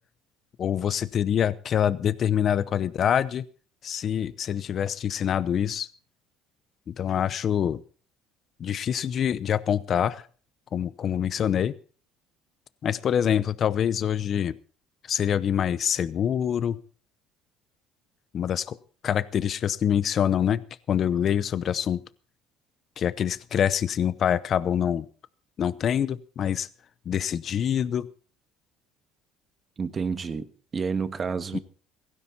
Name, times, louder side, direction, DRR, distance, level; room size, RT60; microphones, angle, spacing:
voice 1, 0.6-3.4 3.8-5.9 6.9-7.8 8.6-10.2 10.7-11.7 12.8-14.5 15.1-16.8 18.3-18.8 19.0-20.6 20.9-22.0 23.0-25.0 25.6-26.7 27.1-28.1 31.5-31.6, left 9 dB, 45° left, 17 dB, 0.7 m, -25 dB
voice 2, 29.8-31.6, right 5 dB, 30° right, 11 dB, 1.4 m, -30 dB
16.5 x 15.5 x 4.2 m, 0.41 s
cardioid pair, 105°, 0 cm